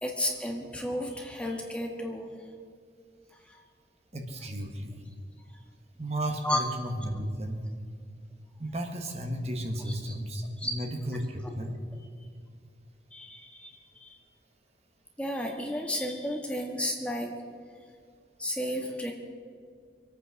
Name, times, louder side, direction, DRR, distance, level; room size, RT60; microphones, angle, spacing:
voice 1, 0.0-2.3 3.5-3.6 6.4-6.6 10.6-10.7 13.1-14.2 15.2-17.3 18.4-19.1, left 1 dB, 5° left, 1 dB, 1.6 m, -32 dB
voice 2, 4.1-5.1 6.0-7.7 8.6-11.7, right 1 dB, 35° right, 3 dB, 1.6 m, -34 dB
24.5 x 8.9 x 6.3 m, 2.1 s
head